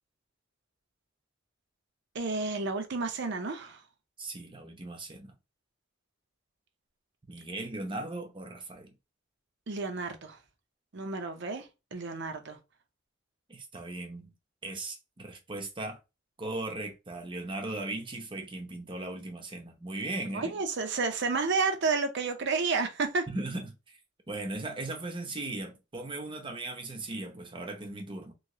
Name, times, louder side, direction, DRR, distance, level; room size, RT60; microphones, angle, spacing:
voice 1, 2.1-3.8 9.7-10.4 10.9-12.6 20.3-23.3, right 4 dB, 65° right, 0.7 m, -31 dB
voice 2, 4.2-5.3 7.3-8.9 13.5-14.3 14.6-16.0 16.4-20.5 23.3-24.0 24.3-28.3, right 2 dB, 25° right, 0.7 m, -38 dB
3.1 x 2.8 x 2.7 m
head